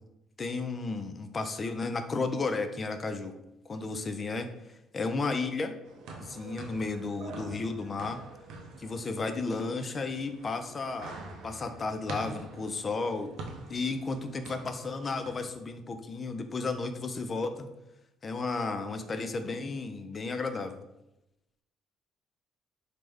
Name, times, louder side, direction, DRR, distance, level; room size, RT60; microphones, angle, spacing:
voice 1, 0.4-3.3 3.7-4.5 4.9-5.7 6.2-8.2 8.8-11.2 11.4-13.3 13.7-17.7 18.2-20.8, left 3 dB, 35° left, 8 dB, 0.3 m, -33 dB
sound 1, 5.8-15.5, right 3 dB, 80° right, 0.5 m, -46 dB
3.2 x 2.1 x 3.4 m, 0.90 s
supercardioid pair, 80°, 0 cm